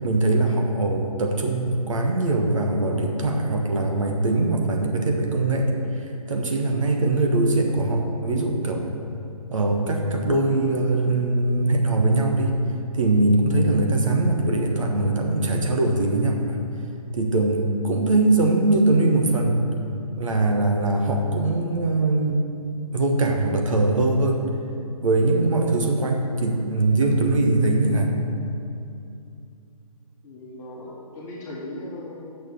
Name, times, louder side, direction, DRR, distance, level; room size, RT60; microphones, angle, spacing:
voice 1, 0.0-8.9 9.5-12.5 12.9-16.6 17.1-19.6 20.2-22.4 22.9-24.5 25.0-28.2, right 2 dB, 60° right, 2 dB, 1.3 m, -22 dB
voice 2, 30.2-32.3, left 1 dB, 20° left, -4 dB, 1.7 m, -37 dB
8.9 x 6.6 x 7.1 m, 2.6 s
figure-of-eight pair, 135°, 19 cm